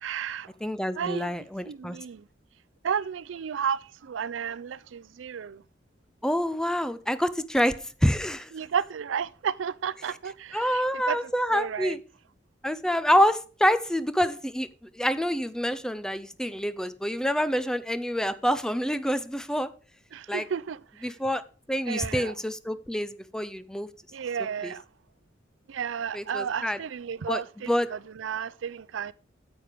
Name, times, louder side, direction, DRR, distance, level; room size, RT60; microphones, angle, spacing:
voice 1, 0.0-0.5 0.9-1.3 1.6-2.2 2.8-5.6 8.5-12.0 20.1-21.1 21.9-22.3 24.1-24.8 25.7-29.1, right 7 dB, 80° right, 0.4 m, -33 dB
voice 2, 0.6-2.0 6.2-8.5 10.5-12.0 12.6-19.7 20.3-20.4 21.0-21.4 21.7-23.9 24.6-24.7 26.1-26.8 27.3-27.4 27.7-27.9, equal, 5° left, 0.5 m, -27 dB
9.3 x 7.4 x 5.1 m
head